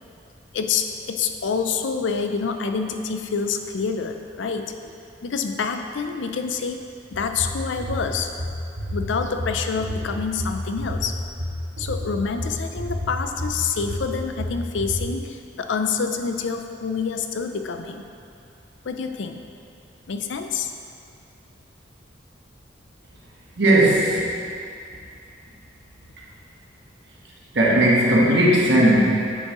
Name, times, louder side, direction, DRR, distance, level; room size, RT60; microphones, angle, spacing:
voice 1, 0.5-4.7 5.2-6.8 7.1-8.3 8.9-11.2 11.8-18.0 18.8-19.4 20.1-20.7, left 5 dB, 75° left, 6 dB, 0.5 m, -27 dB
sound 1, 7.1-15.1, left 1 dB, 85° right, 1.3 m, -30 dB
voice 2, 23.6-24.4 27.5-29.0, right 1 dB, 65° right, -4 dB, 1.3 m, -17 dB
9.5 x 5.4 x 3.0 m, 2.5 s
head